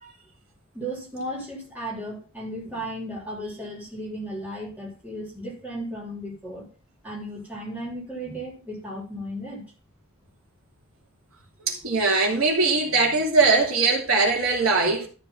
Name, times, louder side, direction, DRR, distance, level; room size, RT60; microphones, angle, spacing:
voice 1, 0.7-6.7 7.0-9.6, right 1 dB, 5° right, 3.5 m, -35 dB
voice 2, 11.7-15.1, right 3 dB, 75° right, 2.9 m, -21 dB
13.0 x 4.7 x 5.7 m
head